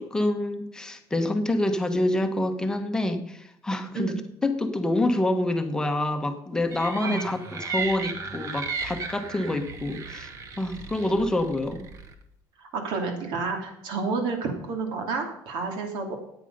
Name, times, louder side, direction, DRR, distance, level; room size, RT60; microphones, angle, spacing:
voice 1, 0.0-10.3 10.6-11.9, left 1 dB, 10° left, 6 dB, 1.2 m, -27 dB
sound 1, 6.7-12.1, right 4 dB, 35° right, 1.4 m, -35 dB
voice 2, 7.0-7.3 12.6-16.2, right 4 dB, 60° right, 4 dB, 2.8 m, -30 dB
14.0 x 9.2 x 5.5 m, 0.78 s
cardioid pair, 165°, 9 cm